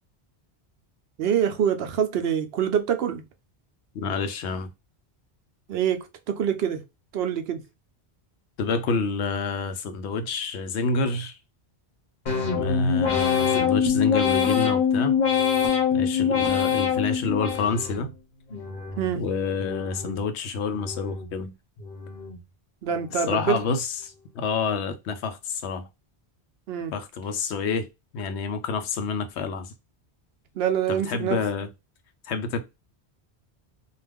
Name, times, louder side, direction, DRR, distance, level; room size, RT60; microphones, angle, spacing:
voice 1, 1.2-3.2 5.7-6.8 7.1-7.6 19.0-19.2 22.8-23.6 26.7-26.9 30.5-31.4, right 8 dB, 70° right, 0.8 m, -25 dB
voice 2, 3.9-4.7 8.6-11.4 12.5-15.2 15.9-18.1 19.1-21.5 23.3-25.9 26.9-27.9 28.1-29.7 30.9-31.7 32.2-32.6, left 4 dB, 90° left, 0.9 m, -28 dB
sound 1, 12.3-18.1 18.5-19.1 19.6-20.2 20.7-21.3 21.8-22.4 22.9-23.4, left 7 dB, 55° left, 0.9 m, -24 dB
2.4 x 2.3 x 3.4 m
omnidirectional pair, 1.1 m